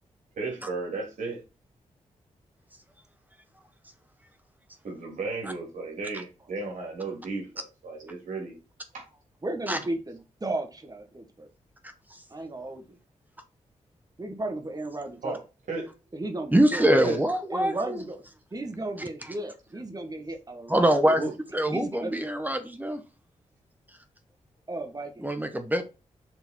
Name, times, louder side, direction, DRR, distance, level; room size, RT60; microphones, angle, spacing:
voice 1, 0.4-1.4 4.8-8.5 8.9-9.1 15.2-15.4 15.7-15.9 16.8-17.2 21.0-21.3, right 3 dB, 80° right, 3.2 m, -34 dB
voice 2, 9.4-11.5 12.3-13.0 14.2-15.4 16.1-16.9 17.5-18.2 18.5-20.9 21.7-22.2 24.7-25.3, right 2 dB, 30° right, 1.6 m, -35 dB
voice 3, 16.5-18.0 20.7-21.2 21.5-23.0 25.2-25.8, right 1 dB, 15° right, 1.2 m, -23 dB
7.0 x 4.0 x 4.4 m
cardioid pair, 50°, 13 cm